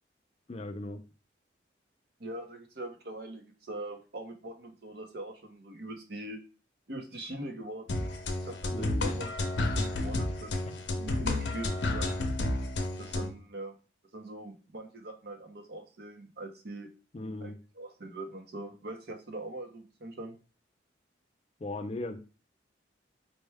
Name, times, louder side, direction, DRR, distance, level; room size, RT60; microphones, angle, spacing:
voice 1, 0.5-1.0 8.7-9.1 17.1-17.6 21.6-22.2, left 2 dB, 35° left, 6 dB, 0.4 m, -37 dB
voice 2, 2.2-6.4 6.9-8.1 8.4-9.3 9.6-10.7 11.0-12.2 13.0-13.7 14.1-16.9 17.4-20.4, right 1 dB, 60° right, 4 dB, 0.8 m, -42 dB
sound 1, 7.9-13.3, left 2 dB, 75° left, 0.6 m, -31 dB
4.4 x 2.2 x 3.3 m, 0.34 s
head